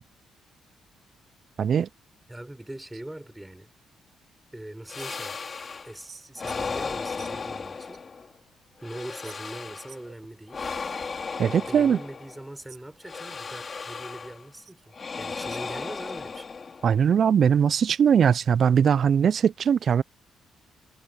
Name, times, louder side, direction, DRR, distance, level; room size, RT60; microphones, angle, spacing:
voice 1, 1.6-1.9 11.4-12.0 16.8-20.0, right 7 dB, 55° right, 0.3 m, -20 dB
voice 2, 2.3-3.7 4.5-5.4 5.9-8.0 8.8-10.6 11.5-16.5, right 1 dB, 10° right, 5.0 m, -41 dB
sound 1, 4.9-6.0 6.4-8.4 8.8-10.0 10.5-12.5 13.0-14.5 14.9-17.1, left 5 dB, 40° left, 5.2 m, -35 dB
cardioid pair, 90°, 0 cm